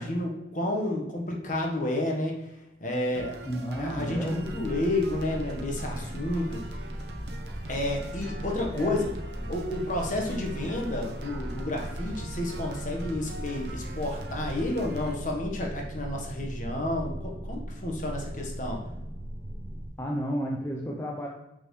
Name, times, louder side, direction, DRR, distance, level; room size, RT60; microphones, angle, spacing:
voice 1, 0.0-2.5 2.8-3.3 3.8-6.6 7.7-9.1 9.5-18.8, left 1 dB, 40° left, 0 dB, 1.3 m, -31 dB
sound 1, 3.1-15.1, right 2 dB, 60° right, 0.8 m, -43 dB
voice 2, 3.4-4.4 8.7-9.0 20.0-21.3, equal, 15° left, -2 dB, 0.6 m, -31 dB
sound 2, 4.3-19.9, equal, 10° right, 1.0 m, -38 dB
6.6 x 5.9 x 3.2 m, 0.92 s
head